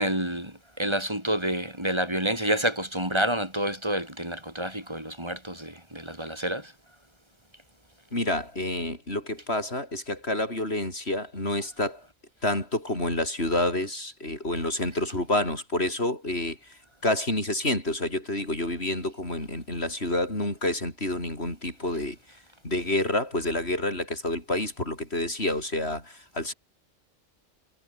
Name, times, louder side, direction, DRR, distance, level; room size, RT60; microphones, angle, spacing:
voice 1, 0.0-6.7, right 1 dB, 20° right, 6.6 m, -28 dB
voice 2, 8.1-12.0 12.4-22.2 22.6-26.5, left 1 dB, 50° left, 7.5 m, -28 dB
omnidirectional pair, 1.4 m